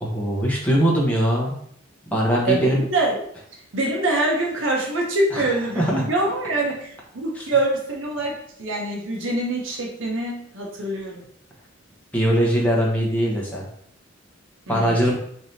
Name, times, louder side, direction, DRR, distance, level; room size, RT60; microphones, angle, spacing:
voice 1, 0.0-1.5 2.1-2.8 5.3-5.5 5.7-6.0 7.4-7.5 12.1-13.7 14.7-15.1, equal, 5° left, -4 dB, 0.9 m, -21 dB
voice 2, 2.4-3.2 3.7-11.2 14.7-15.1, right 2 dB, 70° right, -1 dB, 0.8 m, -25 dB
3.3 x 2.8 x 4.1 m, 0.66 s
head